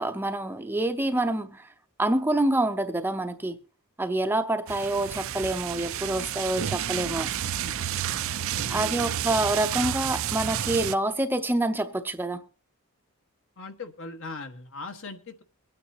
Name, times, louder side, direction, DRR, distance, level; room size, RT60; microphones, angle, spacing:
voice 1, 0.0-1.7 2.0-3.6 4.0-7.3 8.7-12.4, right 1 dB, 10° right, 0.6 m, -27 dB
sound 1, 4.7-10.9, right 10 dB, 65° right, 0.5 m, -30 dB
voice 2, 8.6-9.2 13.6-15.4, left 3 dB, 60° left, 1.4 m, -40 dB
23.0 x 9.4 x 2.8 m
head